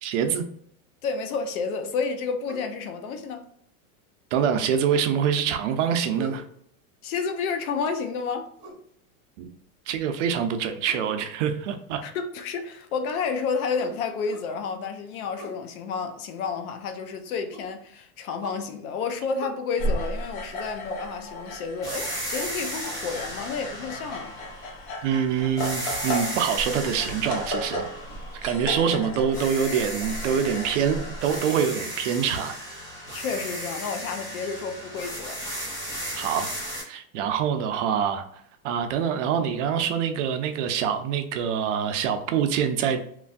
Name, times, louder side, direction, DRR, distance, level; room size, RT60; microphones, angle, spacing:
voice 1, 0.0-0.4 4.3-6.4 9.4-9.5 9.9-12.0 25.0-27.9 28.4-32.5 36.2-36.5 36.8-38.2 38.6-43.0, right 8 dB, 60° right, 0.5 m, -25 dB
voice 2, 1.0-3.5 7.0-8.5 12.0-24.3 33.1-35.4, left 5 dB, 80° left, 0.7 m, -30 dB
sound 1, 2.5-2.7 4.3-5.0 6.2-6.5 8.6-8.9 10.8-11.2 13.8-14.5 15.4-15.6 17.5-17.7 18.4-18.6 19.4-19.5, right 2 dB, 15° right, 0.8 m, -42 dB
sound 2, 19.8-31.4, equal, 45° left, 0.8 m, -34 dB
sound 3, 21.8-25.1 25.6-28.9 29.3-36.8, equal, 10° left, 0.5 m, -35 dB
3.1 x 2.5 x 2.3 m
supercardioid pair, 165°, 42 cm